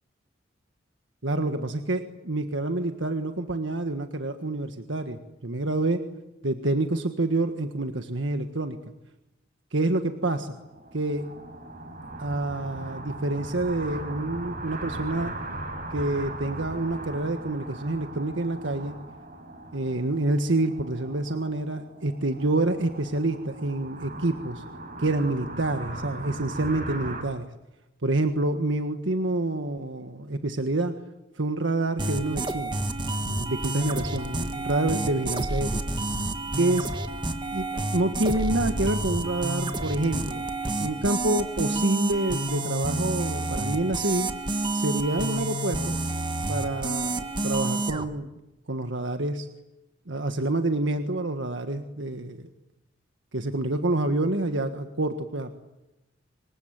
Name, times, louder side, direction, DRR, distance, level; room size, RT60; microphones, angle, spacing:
voice 1, 1.2-6.0 6.4-8.8 9.7-10.5 10.9-11.3 12.2-15.3 15.9-18.9 19.7-24.6 25.0-27.5 28.0-30.9 31.3-32.8 33.3-35.8 36.5-36.9 37.5-40.5 40.8-44.3 44.7-46.0 46.5-48.4 48.7-49.5 50.1-52.5 53.3-55.6, right 2 dB, 75° right, 7 dB, 1.6 m, -27 dB
sound 1, 10.5-27.2, right 2 dB, 45° right, 6.6 m, -39 dB
sound 2, 32.0-48.0, right 2 dB, 25° right, 1.6 m, -29 dB
26.0 x 24.0 x 9.0 m, 0.95 s
head